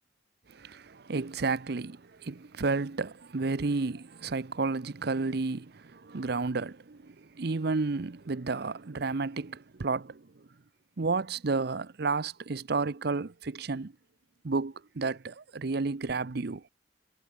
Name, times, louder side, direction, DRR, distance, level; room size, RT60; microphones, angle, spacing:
voice 1, 0.5-10.3 11.0-13.9 14.4-16.6, right 4 dB, 60° right, 0.7 m, -32 dB
head